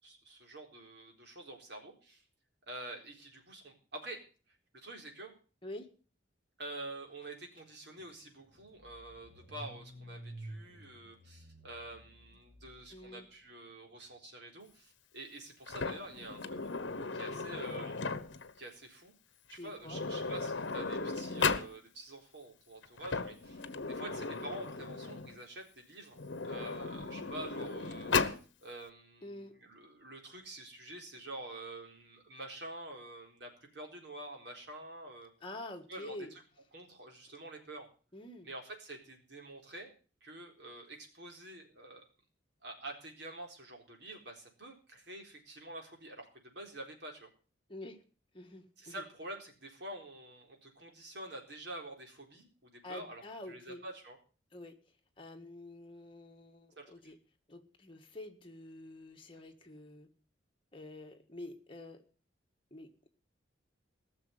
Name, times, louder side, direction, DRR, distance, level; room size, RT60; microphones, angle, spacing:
voice 1, 0.0-2.2 2.7-4.2 4.8-5.4 6.6-16.7 17.1-18.1 18.6-19.1 19.5-28.3 28.6-35.3 35.9-36.4 36.7-37.9 38.4-39.9 40.2-42.0 42.6-47.3 48.8-53.2 53.5-54.2 56.8-57.1, right 1 dB, 60° right, 2 dB, 4.0 m, -47 dB
Car / Engine starting, 7.6-7.7 8.0-13.2, right 1 dB, 25° right, 4.5 m, -51 dB
voice 2, 12.9-13.3 17.4-17.5 19.6-20.0 29.2-29.5 35.4-36.3 38.1-38.5 47.7-48.0 48.3-49.0 52.8-53.8 54.5-54.8 55.2-57.2 57.5-60.1 60.7-62.0 62.7-63.1, left 1 dB, 25° left, 3 dB, 1.8 m, -47 dB
Sliding door, 15.7-18.5 19.5-19.6 19.8-21.7 22.8-25.4 26.1-28.4, left 4 dB, 70° left, 1.0 m, -36 dB
17.5 x 6.7 x 8.1 m, 0.39 s
head